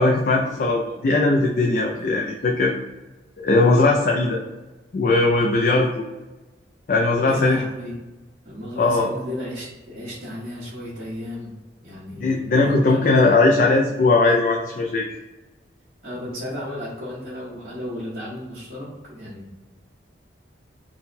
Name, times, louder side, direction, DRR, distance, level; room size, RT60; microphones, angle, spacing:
voice 1, 0.0-2.7 3.4-4.4 4.9-6.0 6.9-7.6 8.8-9.1 12.2-15.1, left 3 dB, 45° left, 0 dB, 0.4 m, -19 dB
voice 2, 7.3-7.9 8.4-13.6 16.0-19.6, equal, 45° right, -13 dB, 1.4 m, -34 dB
3.9 x 2.2 x 4.1 m, 1.1 s
head